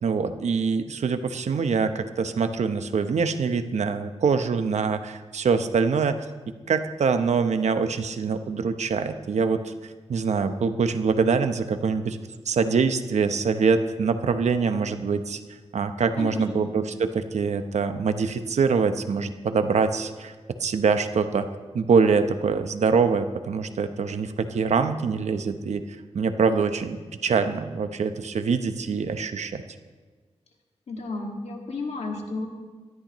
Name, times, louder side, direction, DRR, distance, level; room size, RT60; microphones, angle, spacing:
voice 1, 0.0-6.3 6.7-12.2 12.4-15.4 15.7-20.3 20.6-21.5 21.7-25.8 26.1-29.6, right 5 dB, 85° right, 9 dB, 0.9 m, -24 dB
voice 2, 16.2-16.7 30.9-32.5, left 3 dB, 70° left, 1 dB, 2.0 m, -32 dB
19.0 x 13.0 x 3.1 m, 1.4 s
wide cardioid pair, 115°, 11 cm